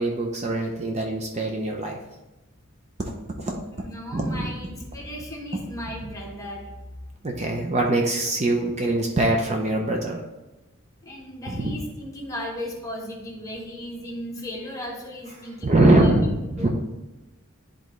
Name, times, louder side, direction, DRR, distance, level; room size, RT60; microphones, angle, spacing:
voice 1, 0.0-2.0 3.4-3.6 4.1-4.5 7.2-10.2 11.5-11.8 15.6-16.7, right 2 dB, 30° right, 1 dB, 0.6 m, -23 dB
voice 2, 3.7-6.7 11.0-16.1 16.6-16.7, left 1 dB, 15° left, -2 dB, 1.3 m, -35 dB
10.5 x 3.8 x 3.1 m, 1.1 s
head